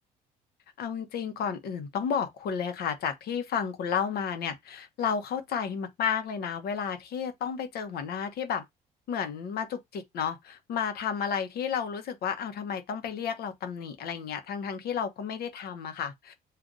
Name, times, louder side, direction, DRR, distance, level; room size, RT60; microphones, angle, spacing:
voice 1, 0.8-8.6 9.1-16.3, left 7 dB, 65° left, 1.0 m, -32 dB
7.5 x 2.5 x 2.6 m
cardioid pair, 110°, 17 cm